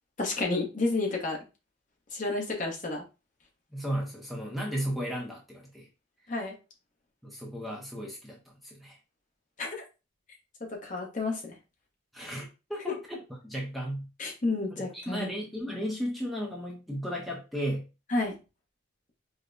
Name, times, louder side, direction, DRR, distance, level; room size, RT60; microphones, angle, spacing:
voice 1, 0.2-1.4 2.1-3.0 6.3-6.5 9.6-9.8 10.7-11.5 12.9-13.0 14.2-15.3 18.1-18.3, left 2 dB, 40° left, -1 dB, 0.9 m, -30 dB
voice 2, 3.7-5.9 7.2-9.0 12.1-13.2 13.4-14.1 14.8-17.8, equal, ahead, -2 dB, 0.6 m, -35 dB
5.1 x 2.2 x 2.6 m, 0.29 s
head